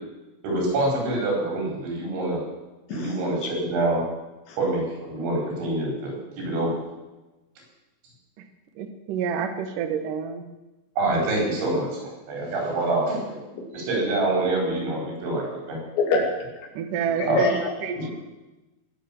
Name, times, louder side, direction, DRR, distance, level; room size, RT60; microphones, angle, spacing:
voice 1, 0.4-2.4 2.9-4.0 4.6-6.8 11.0-13.4 13.7-15.8 17.0-17.4 18.0-18.1, right 2 dB, 85° right, -1 dB, 7.1 m, -26 dB
voice 2, 2.9-3.6 4.5-4.6 13.5-13.6 16.0-16.7 17.2-17.9, left 3 dB, 75° left, 2 dB, 4.7 m, -27 dB
voice 3, 8.8-10.4 16.8-17.5 17.8-18.1, right 7 dB, 65° right, 8 dB, 2.4 m, -28 dB
21.0 x 8.4 x 7.4 m, 1.1 s
omnidirectional pair, 5.2 m